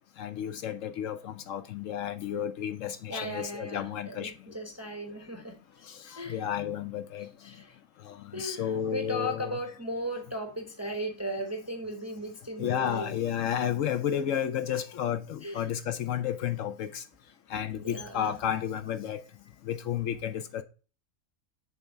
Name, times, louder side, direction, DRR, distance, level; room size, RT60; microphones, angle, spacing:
voice 1, 0.2-4.3 5.9-7.6 8.0-9.6 12.6-17.0 17.5-19.2 19.6-20.6, left 9 dB, 70° left, 0.9 m, -32 dB
voice 2, 3.1-5.9 6.2-6.4 7.4-7.7 8.3-13.1 15.4-15.7 17.8-18.3, equal, 15° right, 0.6 m, -36 dB
7.0 x 3.5 x 5.4 m
omnidirectional pair, 1.5 m